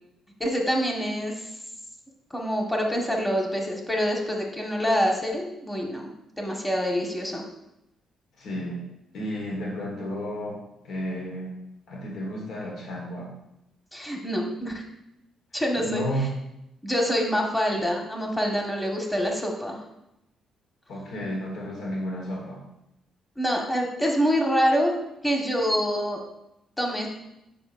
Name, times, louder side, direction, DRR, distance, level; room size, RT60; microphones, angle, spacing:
voice 1, 0.4-1.5 2.3-6.1 6.4-7.4 13.9-14.8 15.5-16.0 16.8-19.8 23.4-24.9 25.2-26.2 26.8-27.1, equal, 10° left, 0 dB, 1.5 m, -26 dB
voice 2, 8.4-8.9 9.1-11.5 11.9-13.3 15.8-16.3 20.9-22.6, equal, 70° left, -2 dB, 1.5 m, -32 dB
7.5 x 5.5 x 2.6 m, 0.86 s
cardioid pair, 90°, 0 cm